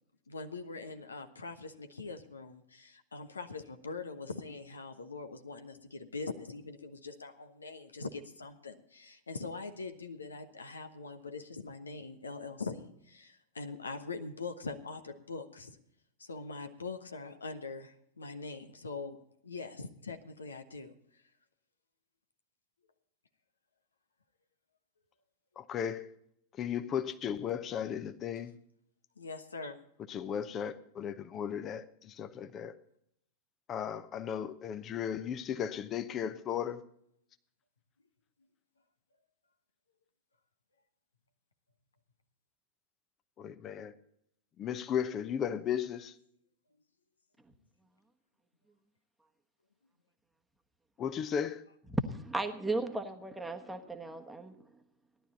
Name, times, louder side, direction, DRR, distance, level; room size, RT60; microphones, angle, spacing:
voice 1, 0.3-15.8 16.2-19.2 19.4-20.9 29.2-29.8, left 4 dB, 75° left, 8 dB, 1.2 m, -42 dB
voice 2, 25.6-26.1 26.6-28.5 30.1-32.7 33.7-36.8 43.4-43.9 44.6-46.1 51.0-51.6, left 8 dB, 30° left, 13 dB, 1.0 m, -35 dB
voice 3, 51.9-54.7, right 2 dB, 5° right, 5 dB, 1.3 m, -35 dB
17.0 x 11.5 x 4.1 m, 0.70 s
figure-of-eight pair, 90°, 0 cm